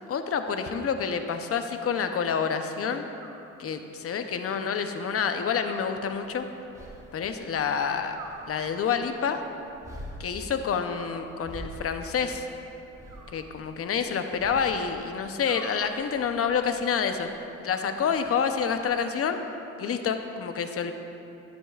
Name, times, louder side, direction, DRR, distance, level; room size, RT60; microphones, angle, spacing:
voice 1, 0.1-3.1 3.6-6.5 7.1-8.2 8.5-9.4 10.2-12.4 13.3-17.3 17.6-19.4 19.8-20.9, left 6 dB, 50° left, 7 dB, 0.7 m, -28 dB
Animal, 1.0-1.9 3.2-4.2 5.6-6.7 8.1-9.1 10.9-11.8 13.1-14.2 15.4-16.4 17.7-18.6, right 4 dB, 65° right, 1.0 m, -49 dB
sound 1, 5.8-18.9, equal, 10° right, 1.5 m, -48 dB
13.5 x 9.0 x 2.4 m, 2.9 s
cardioid pair, 90°, 30 cm